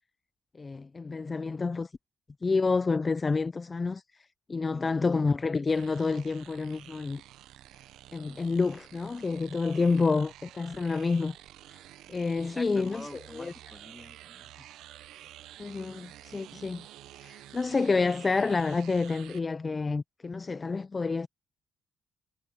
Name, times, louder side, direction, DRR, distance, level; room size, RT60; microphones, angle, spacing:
voice 1, 0.6-1.9 2.4-4.0 4.5-7.2 8.1-11.3 12.1-13.0 13.3-13.5 15.6-16.9 17.2-21.3, left 4 dB, 30° left, 0.3 m, -28 dB
sound 1, 5.7-19.4, right 13 dB, 85° right, 0.5 m, -50 dB
voice 2, 9.8-10.1 12.4-14.7, left 1 dB, 10° left, 1.8 m, -47 dB
cardioid pair, 90°, 0 cm